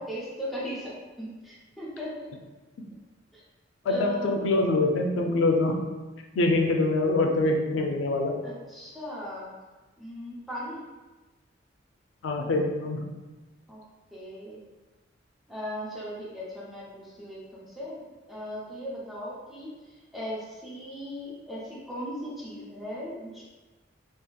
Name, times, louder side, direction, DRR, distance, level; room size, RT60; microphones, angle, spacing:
voice 1, 0.0-2.3 3.3-3.4 3.8-4.5 8.4-9.5 10.0-10.8 13.7-13.8 14.1-14.6 15.5-23.4, equal, ahead, -7 dB, 0.6 m, -38 dB
voice 2, 3.9-5.8 6.3-8.4 12.2-13.0, left 2 dB, 85° left, 2 dB, 0.4 m, -24 dB
2.7 x 2.4 x 2.3 m, 1.2 s
head